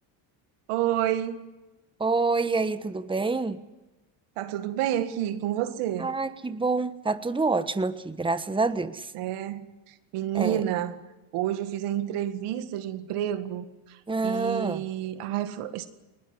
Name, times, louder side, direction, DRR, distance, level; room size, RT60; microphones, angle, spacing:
voice 1, 0.7-1.5 4.4-6.1 9.1-11.0 11.3-14.0 14.2-15.9, right 11 dB, 80° right, 2.0 m, -29 dB
voice 2, 2.0-3.6 6.0-9.1 10.3-10.6 14.1-14.8, right 3 dB, 10° right, 1.2 m, -27 dB
21.0 x 19.5 x 9.9 m
cardioid pair, 95°, 50 cm